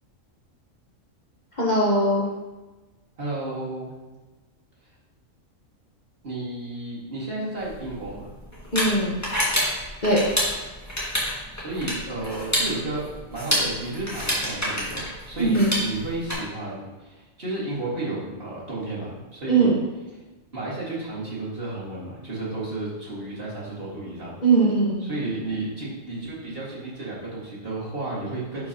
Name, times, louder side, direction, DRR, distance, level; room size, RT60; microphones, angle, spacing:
voice 1, 1.6-2.2 8.7-9.2 10.0-10.2 15.4-15.7 19.5-19.8 24.4-25.0, right 2 dB, 35° left, -6 dB, 1.2 m, -20 dB
voice 2, 3.2-3.9 6.2-8.3 11.5-19.7 20.5-24.4 25.0-28.7, right 2 dB, 45° right, -7 dB, 2.3 m, -32 dB
sound 1, 7.6-16.3, equal, 10° left, 1.9 m, -28 dB
10.5 x 5.0 x 2.9 m, 1.2 s
omnidirectional pair, 1.4 m